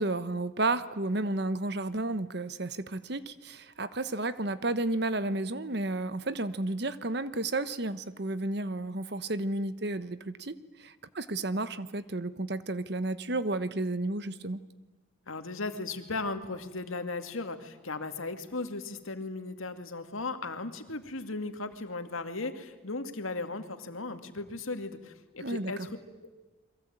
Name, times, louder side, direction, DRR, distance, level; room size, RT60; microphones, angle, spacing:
voice 1, 0.0-14.6 25.4-25.9, right 2 dB, 55° right, 14 dB, 1.2 m, -32 dB
voice 2, 15.3-26.3, left 3 dB, 90° left, 8 dB, 2.3 m, -37 dB
29.5 x 22.5 x 9.0 m, 1.1 s
head